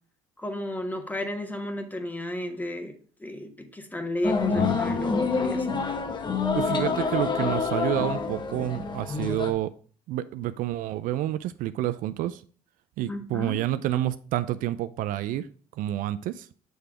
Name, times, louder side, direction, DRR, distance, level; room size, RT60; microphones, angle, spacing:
voice 1, 0.4-5.8 13.1-13.6, left 1 dB, 10° left, 5 dB, 1.3 m, -33 dB
sound 1, 4.2-9.5, left 4 dB, 30° left, 1.0 m, -27 dB
voice 2, 6.5-9.7 10.1-12.4 13.0-15.5 15.8-16.5, right 13 dB, 65° right, 13 dB, 0.4 m, -29 dB
7.9 x 3.4 x 4.9 m, 0.43 s
supercardioid pair, 90°, 15 cm